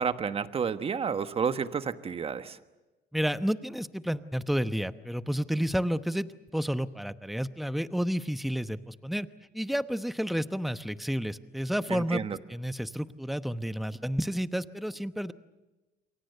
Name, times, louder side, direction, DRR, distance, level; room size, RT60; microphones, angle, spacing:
voice 1, 0.0-2.6 11.9-12.4, right 6 dB, 35° right, 10 dB, 1.3 m, -30 dB
voice 2, 3.1-6.3 6.5-9.3 9.5-12.2 12.5-15.3, equal, ahead, 11 dB, 0.9 m, -30 dB
29.0 x 23.5 x 6.8 m, 1.1 s
cardioid pair, 110°, 17 cm